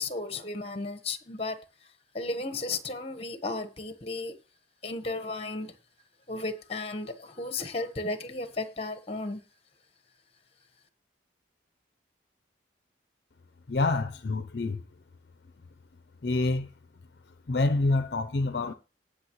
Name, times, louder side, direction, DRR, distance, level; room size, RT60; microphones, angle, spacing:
voice 1, 0.0-1.6 2.1-4.3 4.8-5.7 6.3-9.4, left 3 dB, 30° left, 1.3 m, -34 dB
voice 2, 13.7-14.8 16.2-16.7 17.5-18.7, left 2 dB, 60° left, 0.6 m, -27 dB
18.5 x 6.3 x 3.1 m
head